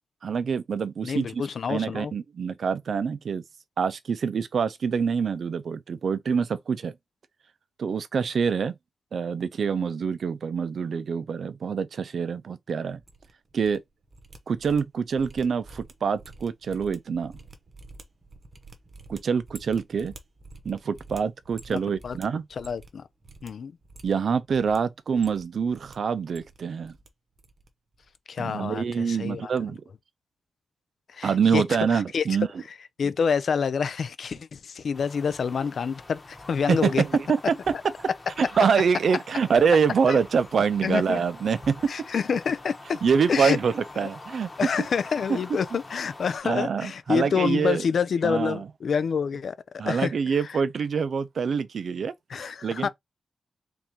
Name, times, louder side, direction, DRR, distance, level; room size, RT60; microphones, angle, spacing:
voice 1, 0.2-1.4 1.7-3.4 3.8-6.9 7.8-8.7 9.1-13.0 13.5-13.8 14.5-17.4 19.1-20.1 20.6-22.4 24.0-26.9 28.4-29.8 31.2-32.5 36.7-37.7 38.0-38.1 38.4-41.9 43.0-44.5 45.3-45.4 46.4-47.8 48.2-48.6 49.8-52.9, right 6 dB, 65° right, 0.5 m, -25 dB
voice 2, 1.0-2.1 21.7-21.8 22.0-22.2 22.6-23.0 23.4-23.7 28.3-29.7 31.1-31.6 31.9-32.2 33.0-37.0 40.1-40.2 40.8-41.2 41.9-43.0 43.3-43.6 44.0-44.1 44.6-49.6 49.8-50.1 50.5-50.6 52.3-52.9, left 6 dB, 65° left, 0.4 m, -27 dB
sound 1, 12.9-13.8 14.0-23.0 23.2-23.5 23.8-24.8 25.1-25.9 26.2-27.1 27.4-27.7 27.9-28.2, right 3 dB, 35° right, 0.8 m, -48 dB
sound 2, 34.9-46.4, left 2 dB, 30° left, 1.1 m, -45 dB
3.8 x 3.6 x 2.9 m
wide cardioid pair, 140°, 0 cm